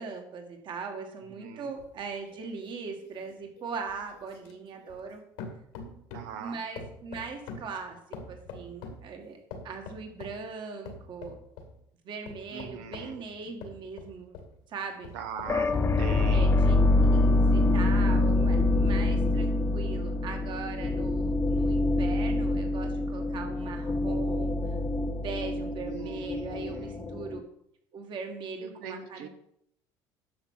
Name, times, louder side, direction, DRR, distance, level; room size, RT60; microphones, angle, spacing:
voice 1, 0.0-5.2 6.4-8.0 8.3-9.4 9.6-11.4 12.0-14.4 14.7-15.1 16.2-24.6 25.0-27.4 27.9-29.3, right 5 dB, 55° right, 4 dB, 2.1 m, -40 dB
voice 2, 1.3-1.7 6.1-6.6 12.5-13.2 15.1-16.5 25.8-27.2 28.6-29.3, right 7 dB, 90° right, 7 dB, 1.3 m, -41 dB
sound 1, 1.8-5.1 5.4-6.4 6.8-9.1 9.5-10.4 10.9-11.7 12.3-14.5 15.0-15.9 16.5-16.6, left 4 dB, 85° left, 2.2 m, -45 dB
sound 2, 15.5-27.4, left 2 dB, 25° left, 0.8 m, -25 dB
9.4 x 6.3 x 5.8 m, 0.72 s
supercardioid pair, 100°, 10 cm